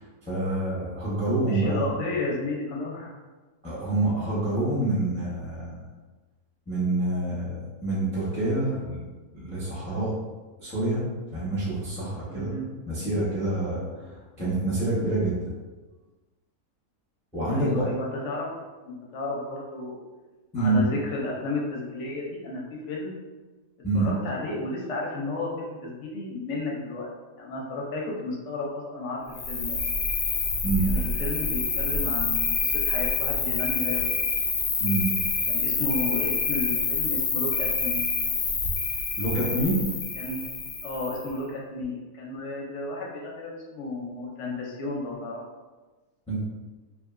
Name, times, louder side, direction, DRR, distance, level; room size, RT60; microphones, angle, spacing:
voice 1, 0.0-1.9 3.6-5.8 6.7-9.0 9.3-10.2 10.6-12.5 12.9-15.5 17.3-17.8 20.5-20.8 23.8-24.1 30.6-30.9 34.8-35.1 39.2-39.9 46.3-46.4, right 2 dB, 5° left, -9 dB, 0.5 m, -27 dB
voice 2, 1.4-3.2 12.3-12.8 17.5-18.5 18.8-20.0 20.6-23.2 23.9-27.1 27.4-29.8 30.8-34.4 35.5-38.0 40.2-40.4 40.8-45.4, left 2 dB, 65° left, -2 dB, 0.7 m, -33 dB
Cricket, 29.3-41.3, left 4 dB, 90° left, 1.2 m, -27 dB
2.8 x 2.5 x 2.4 m, 1.2 s
omnidirectional pair, 1.7 m